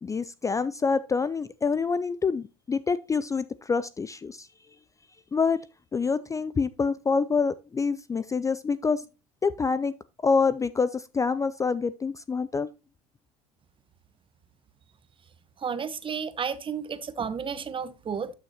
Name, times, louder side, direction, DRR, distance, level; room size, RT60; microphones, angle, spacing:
voice 1, 0.0-4.5 5.3-5.6 5.9-9.0 9.4-9.9 10.2-12.7, left 5 dB, 20° left, 0.4 m, -26 dB
voice 2, 15.6-18.3, right 6 dB, 30° right, 1.0 m, -32 dB
12.5 x 6.4 x 2.9 m
hypercardioid pair, 70°, 16 cm